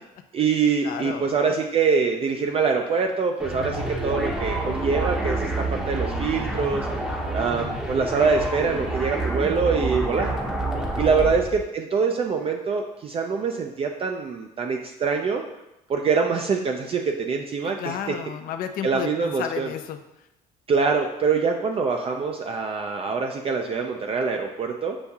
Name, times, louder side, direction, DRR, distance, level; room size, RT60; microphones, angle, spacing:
voice 1, 0.3-6.9 7.3-10.3 11.0-15.4 15.9-18.0 18.8-19.7 20.7-25.0, right 5 dB, 35° right, 3 dB, 0.4 m, -24 dB
voice 2, 0.8-1.6 10.8-11.4 17.8-20.3, left 9 dB, 60° left, 7 dB, 0.4 m, -33 dB
sound 1, 3.4-11.6, right 2 dB, 5° right, 0.7 m, -28 dB
6.9 x 2.7 x 2.3 m, 0.89 s
cardioid pair, 110°, 17 cm